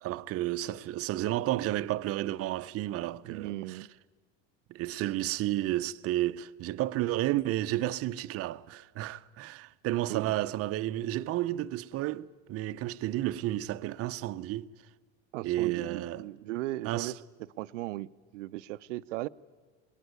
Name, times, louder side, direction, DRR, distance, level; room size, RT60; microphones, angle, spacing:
voice 1, 0.0-3.8 4.7-14.7 15.4-16.2 16.8-17.1, right 15 dB, 40° right, 0.7 m, -32 dB
voice 2, 3.2-3.9 10.1-10.4 15.3-17.2 17.6-19.3, right 17 dB, 85° right, 0.6 m, -37 dB
20.5 x 20.5 x 9.5 m
supercardioid pair, 115°, 36 cm